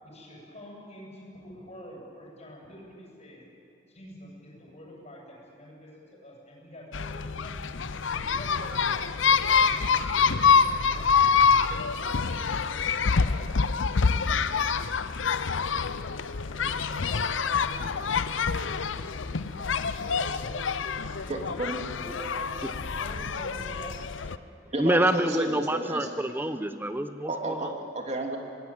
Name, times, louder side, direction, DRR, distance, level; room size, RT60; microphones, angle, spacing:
voice 1, 0.0-3.4 3.9-5.9 6.2-9.1 9.7-11.1 11.4-13.6 13.9-14.7 15.1-16.1 16.4-19.8 20.0-20.7 21.0-22.6 23.0-23.9, equal, 35° left, -3 dB, 7.8 m, -46 dB
sound 1, 6.9-24.4, left 5 dB, 70° left, 0.7 m, -26 dB
voice 2, 21.3-21.8 24.7-26.1 27.2-28.4, right 1 dB, 35° right, 2 dB, 2.9 m, -32 dB
voice 3, 24.8-27.7, right 1 dB, 10° right, 10 dB, 1.0 m, -27 dB
24.5 x 19.5 x 9.1 m, 2.9 s
head